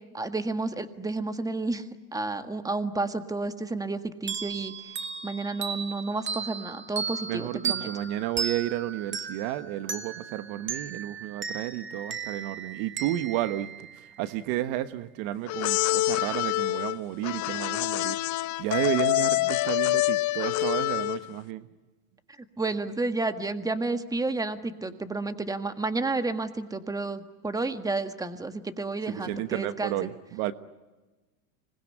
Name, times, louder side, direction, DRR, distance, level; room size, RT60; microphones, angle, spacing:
voice 1, 0.1-5.0 5.2-7.9 22.6-30.0, right 3 dB, 10° right, 1.6 m, -31 dB
sound 1, 4.3-14.5, right 6 dB, 25° right, 1.8 m, -36 dB
voice 2, 7.3-21.7 29.2-30.5, right 14 dB, 60° right, 1.3 m, -32 dB
sound 2, 15.5-21.4, left 18 dB, 40° left, 0.8 m, -26 dB
26.0 x 21.0 x 9.8 m
supercardioid pair, 115°, 45 cm